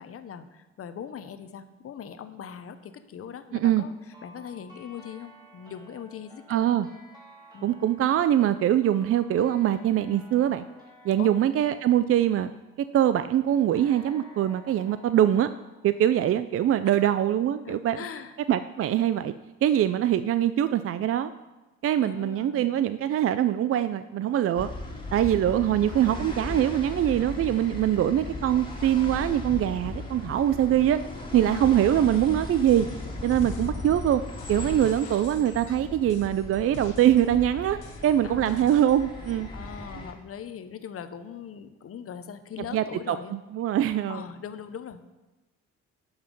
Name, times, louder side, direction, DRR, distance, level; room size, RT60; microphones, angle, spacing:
voice 1, 0.0-3.9 4.2-6.8 7.5-7.7 11.2-11.3 16.8-17.0 17.6-18.4 22.0-22.8 31.5-31.7 38.2-38.6 39.5-43.3 44.1-45.1, left 8 dB, 50° left, 11 dB, 0.8 m, -40 dB
voice 2, 3.5-3.8 6.5-6.9 7.6-10.6 11.0-12.5 12.9-15.5 15.8-18.0 18.5-19.3 19.6-21.3 21.8-24.7 25.1-31.0 31.3-32.9 33.2-34.2 34.5-39.5 42.7-44.2, right 11 dB, 50° right, 12 dB, 0.4 m, -23 dB
sound 1, 3.7-12.9 13.7-16.6, left 1 dB, 15° right, 2.9 m, -54 dB
sound 2, 24.6-40.1, left 2 dB, 15° left, 2.0 m, -37 dB
sound 3, 32.7-33.0 33.2-37.4 37.8-39.0 39.2-39.3, left 6 dB, 85° left, 1.2 m, -48 dB
11.0 x 5.6 x 5.3 m, 1.1 s
cardioid pair, 90°, 30 cm